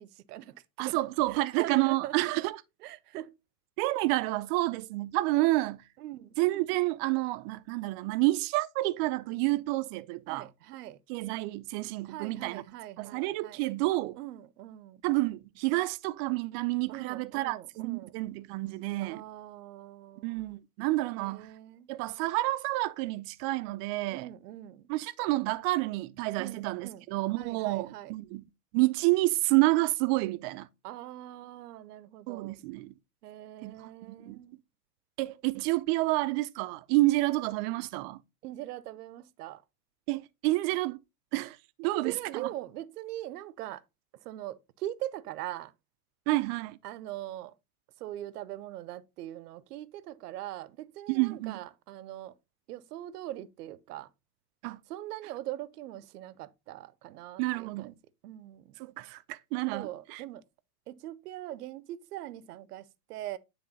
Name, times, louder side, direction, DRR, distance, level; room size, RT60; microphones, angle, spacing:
voice 1, 0.0-1.0 1.3-2.1 2.8-3.3 6.0-6.4 10.3-11.0 12.0-13.6 14.2-15.0 16.9-18.1 19.0-20.5 21.1-21.9 24.1-24.9 26.4-27.1 27.4-28.1 30.8-32.7 33.2-34.6 38.4-39.6 41.8-43.8 44.2-45.7 46.8-47.5 48.0-52.4 52.7-54.1 54.9-57.9 58.2-58.8 59.7-60.4 60.9-63.4, right 14 dB, 75° right, 0.8 m, -42 dB
voice 2, 0.8-2.6 3.8-5.8 6.4-10.5 11.1-12.6 13.0-14.2 15.0-19.2 20.2-21.5 21.9-24.3 24.9-28.4 28.7-30.7 32.3-32.9 33.6-34.4 35.2-38.2 40.1-41.0 41.3-42.5 46.3-46.8 51.1-51.6 54.6-54.8 57.4-57.9 58.8-60.2, right 20 dB, 40° right, 0.6 m, -29 dB
9.7 x 3.3 x 4.0 m
hypercardioid pair, 120°, 47 cm